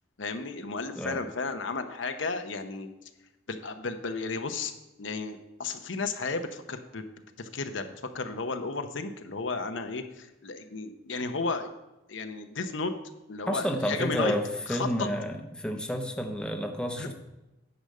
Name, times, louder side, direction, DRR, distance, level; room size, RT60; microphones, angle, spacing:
voice 1, 0.2-2.9 3.5-4.7 5.0-7.0 7.4-7.9 8.1-11.7 12.1-12.9 13.3-14.3 14.7-15.1 17.0-17.1, left 4 dB, 90° left, 7 dB, 0.9 m, -33 dB
voice 2, 13.5-17.1, equal, 5° left, 3 dB, 0.8 m, -30 dB
9.8 x 5.1 x 6.6 m, 0.98 s
head